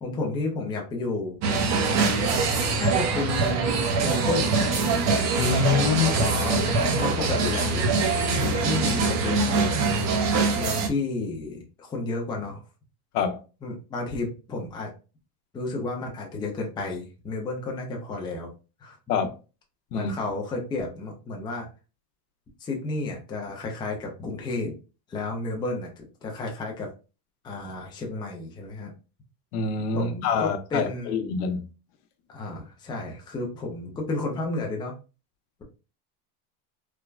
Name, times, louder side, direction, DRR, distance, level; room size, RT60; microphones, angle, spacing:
voice 1, 0.0-2.2 2.8-5.0 6.1-6.6 7.0-10.0 10.5-12.6 13.6-14.9 15.5-18.5 18.8-19.0 19.9-21.7 22.6-24.7 25.1-25.9 26.2-26.9 27.4-28.9 29.9-31.2 32.3-34.9, left 3 dB, 10° left, 0.4 m, -32 dB
sound 1, 1.4-10.9, right 4 dB, 40° right, 0.6 m, -23 dB
voice 2, 5.4-6.1 13.1-13.4 19.1-19.3 19.9-20.1 29.5-31.7, left 6 dB, 85° left, 0.8 m, -25 dB
3.3 x 2.1 x 2.3 m
supercardioid pair, 135°, 45 cm